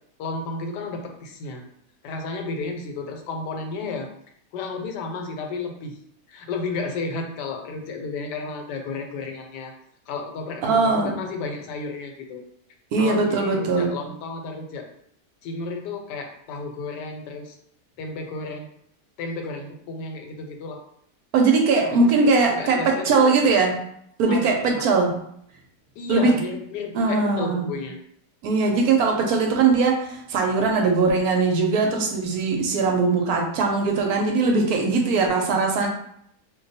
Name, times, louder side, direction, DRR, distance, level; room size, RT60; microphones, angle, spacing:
voice 1, 0.2-1.6 2.0-4.1 4.5-6.0 6.3-9.7 10.1-12.4 13.0-14.9 15.4-17.6 18.0-18.7 19.2-20.8 22.0-23.4 24.3-24.9 26.0-28.0, left 3 dB, 85° left, 3 dB, 1.2 m, -32 dB
voice 2, 10.6-11.2 12.9-14.0 21.3-23.8 24.2-25.2 26.1-26.3 26.9-27.7 28.4-35.9, right 4 dB, 70° right, 2 dB, 1.0 m, -20 dB
2.6 x 2.2 x 3.9 m, 0.71 s
omnidirectional pair, 1.8 m